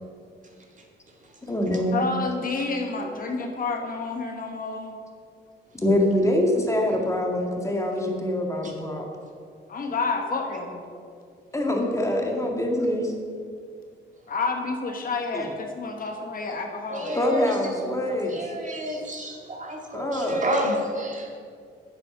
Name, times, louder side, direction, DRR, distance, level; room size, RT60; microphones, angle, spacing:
voice 1, 1.4-2.0 5.8-9.1 11.5-13.1 15.3-15.5 17.1-18.5 19.9-20.4, left 1 dB, 15° left, 0 dB, 1.8 m, -25 dB
voice 2, 1.9-4.9 9.7-10.8 14.3-17.6, left 3 dB, 45° left, 2 dB, 1.3 m, -29 dB
voice 3, 16.9-17.6 18.3-21.4, equal, 40° right, 0 dB, 2.1 m, -30 dB
8.7 x 7.7 x 6.0 m, 2.2 s
cardioid pair, 90°, 20 cm